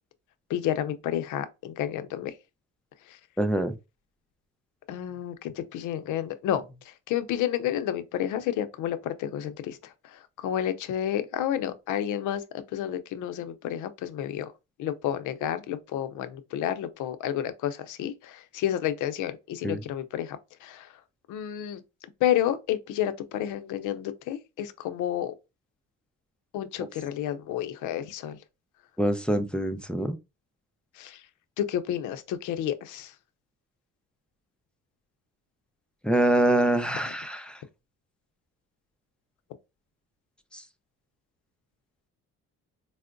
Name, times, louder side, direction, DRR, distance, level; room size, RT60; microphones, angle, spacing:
voice 1, 0.5-2.4 3.1-3.2 4.9-14.5 14.8-20.9 21.3-21.8 22.2-25.3 26.5-28.4 31.0-31.2 31.6-33.1 37.1-37.2, left 11 dB, 85° left, 0.5 m, -30 dB
voice 2, 3.4-3.7 19.6-19.8 29.0-30.2 36.0-37.6 40.5-40.6, right 1 dB, 5° left, 0.5 m, -25 dB
4.4 x 2.1 x 2.4 m
cardioid pair, 90°, 30 cm